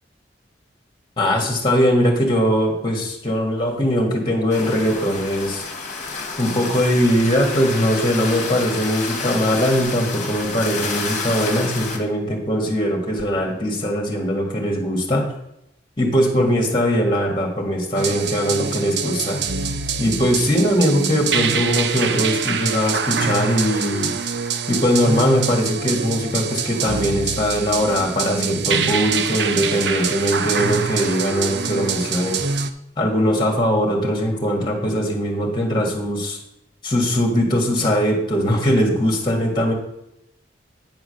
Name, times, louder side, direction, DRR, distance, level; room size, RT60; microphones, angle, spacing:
voice 1, 1.2-5.6 6.4-15.3 16.0-19.4 20.0-24.1 24.7-32.4 33.0-36.4 36.8-39.7, equal, 25° left, 1 dB, 1.8 m, -20 dB
sound 1, 4.5-12.0, left 4 dB, 40° left, 1.4 m, -29 dB
sound 2, 18.0-32.7, right 6 dB, 65° right, 0.5 m, -25 dB
9.4 x 3.9 x 6.4 m, 0.81 s
head